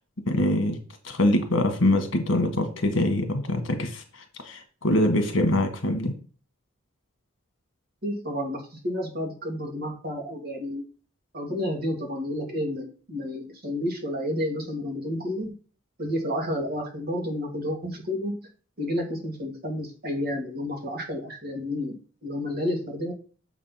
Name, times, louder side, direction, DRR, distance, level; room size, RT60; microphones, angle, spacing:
voice 1, 0.3-0.8 1.0-4.0 4.5-6.1, left 1 dB, 65° left, 5 dB, 1.7 m, -24 dB
voice 2, 8.0-10.8 11.3-15.5 16.0-18.4 18.8-22.0 22.2-23.1, left 1 dB, 50° right, 1 dB, 2.4 m, -30 dB
7.4 x 4.0 x 5.8 m, 0.38 s
head